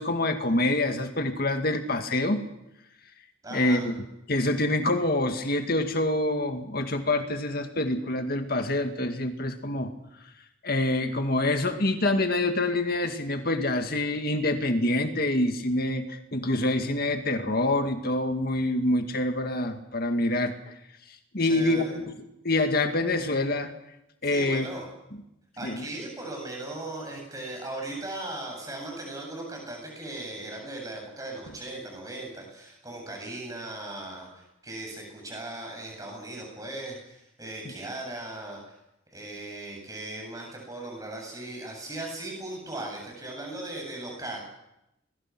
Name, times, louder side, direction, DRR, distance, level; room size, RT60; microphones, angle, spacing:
voice 1, 0.0-2.5 3.5-3.9 4.3-9.9 10.6-20.7 21.3-22.1 22.4-23.7 24.2-24.7 25.6-25.9, left 2 dB, 45° left, 6 dB, 2.1 m, -26 dB
voice 2, 3.4-3.9 21.4-21.9 24.2-24.9 25.6-38.6 39.1-44.4, right 2 dB, 15° right, 1 dB, 7.8 m, -38 dB
26.5 x 22.0 x 6.2 m, 0.86 s
head